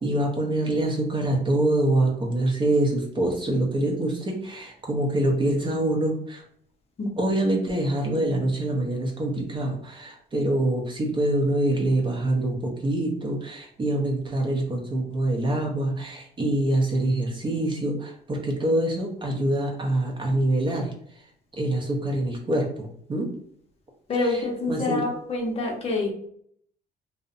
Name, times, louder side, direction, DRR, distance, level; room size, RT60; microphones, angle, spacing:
voice 1, 0.0-6.4 7.2-20.9 21.6-23.3 24.2-24.4 24.7-25.0, right 1 dB, 30° right, 0 dB, 0.6 m, -25 dB
voice 2, 24.1-26.1, left 3 dB, 35° left, 0 dB, 0.7 m, -26 dB
2.6 x 2.1 x 2.5 m, 0.66 s
cardioid pair, 110°, 17 cm